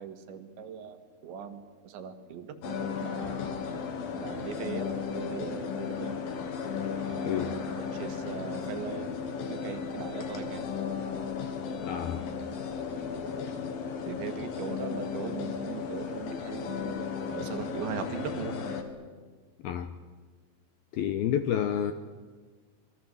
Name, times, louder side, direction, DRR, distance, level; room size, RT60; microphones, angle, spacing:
voice 1, 0.0-3.5 4.1-6.2 7.0-7.6 7.9-9.1 9.5-10.7 14.1-18.6, right 7 dB, 75° right, 8 dB, 4.0 m, -40 dB
sound 1, 2.6-18.8, left 6 dB, 60° left, 3.4 m, -35 dB
voice 2, 7.2-7.6 11.8-12.3 19.6-19.9 20.9-21.9, left 9 dB, 75° left, 10 dB, 2.3 m, -29 dB
27.0 x 23.0 x 7.9 m, 1.5 s
omnidirectional pair, 5.3 m